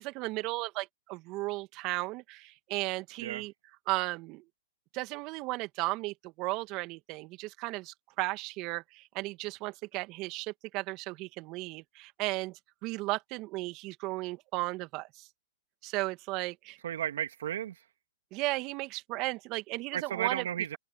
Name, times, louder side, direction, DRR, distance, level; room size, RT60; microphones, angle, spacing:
voice 1, 0.0-3.5 3.9-4.4 4.9-15.3 15.8-16.8 18.3-20.4, right 22 dB, 40° right, 2.3 m, -35 dB
voice 2, 16.8-17.8 19.9-20.8, right 10 dB, 70° right, 2.1 m, -33 dB
hypercardioid pair, 120°, 0 cm